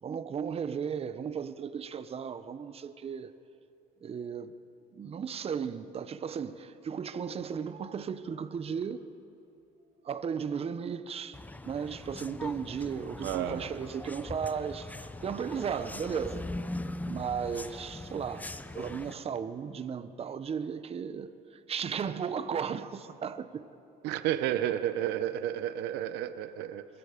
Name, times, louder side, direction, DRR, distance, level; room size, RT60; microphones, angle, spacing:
voice 1, 0.0-3.3 4.0-4.5 4.9-9.1 10.0-11.4 11.6-16.5 17.0-18.5 18.7-23.7, right 7 dB, 35° right, 0.8 m, -35 dB
sound 1, 11.3-19.1, left 2 dB, 10° left, 0.7 m, -41 dB
voice 2, 13.2-13.7 24.0-26.9, right 11 dB, 90° right, 0.8 m, -31 dB
24.5 x 20.5 x 5.1 m
cardioid pair, 110°, 17 cm